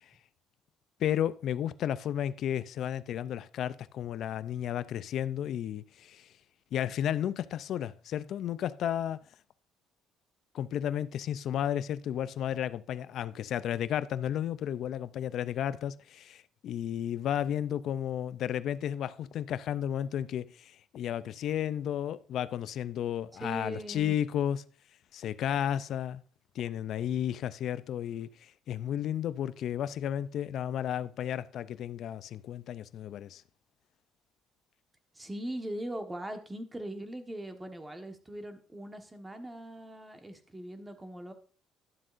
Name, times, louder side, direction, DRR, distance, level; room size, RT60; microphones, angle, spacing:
voice 1, 1.0-6.3 6.7-9.2 10.5-24.6 25.1-26.2 26.6-33.4, left 10 dB, 60° left, 0.4 m, -33 dB
voice 2, 23.3-24.2 35.1-41.3, right 1 dB, 15° right, 1.3 m, -40 dB
12.0 x 7.5 x 2.5 m
cardioid pair, 110°, 0 cm